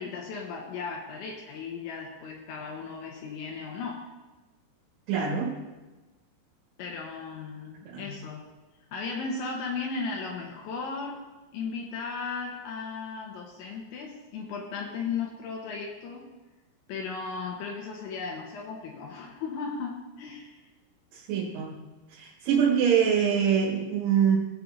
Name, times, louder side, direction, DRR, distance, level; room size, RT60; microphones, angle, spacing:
voice 1, 0.0-4.0 6.8-8.4 8.9-11.2 11.5-16.3 16.9-20.6, left 5 dB, 75° left, -1 dB, 3.1 m, -36 dB
voice 2, 5.1-5.5 7.9-8.1 21.1-21.7 22.1-24.4, right 7 dB, 70° right, -3 dB, 3.7 m, -24 dB
20.5 x 7.6 x 2.6 m, 1.2 s
omnidirectional pair, 5.9 m